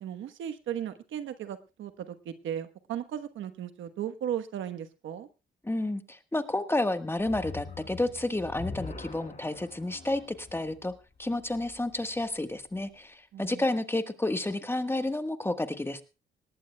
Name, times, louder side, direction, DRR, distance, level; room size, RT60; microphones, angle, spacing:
voice 1, 0.0-5.3 13.3-13.6, right 10 dB, 75° right, 10 dB, 1.2 m, -36 dB
voice 2, 5.6-10.9 11.2-16.0, left 2 dB, 10° left, 9 dB, 1.4 m, -30 dB
sound 1, 7.2-12.4, left 4 dB, 35° left, 7.7 m, -44 dB
19.0 x 18.0 x 2.3 m, 0.29 s
cardioid pair, 90°, 20 cm